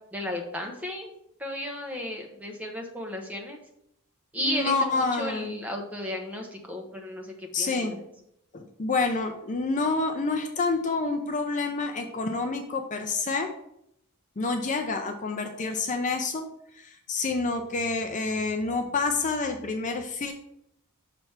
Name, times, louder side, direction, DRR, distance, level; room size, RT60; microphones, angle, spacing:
voice 1, 0.1-1.1 1.4-3.6 4.3-8.0, left 1 dB, 5° right, 1 dB, 0.9 m, -34 dB
voice 2, 4.4-5.6 7.5-8.0 8.5-13.5 14.4-16.5 16.7-20.3, left 3 dB, 35° left, 4 dB, 0.5 m, -28 dB
5.9 x 3.4 x 5.7 m, 0.76 s
head